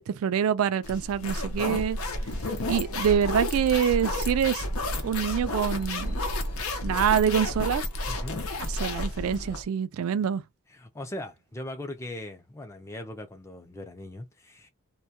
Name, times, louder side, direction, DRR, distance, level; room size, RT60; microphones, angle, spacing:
voice 1, 0.1-2.0 2.7-4.7 5.0-6.2 6.8-7.8 8.6-10.4, right 8 dB, 85° right, 0.3 m, -25 dB
sound 1, 0.8-9.6, left 1 dB, 90° left, 0.6 m, -31 dB
voice 2, 8.1-8.4 10.7-14.7, left 1 dB, 15° left, 0.4 m, -39 dB
2.2 x 2.2 x 2.7 m
head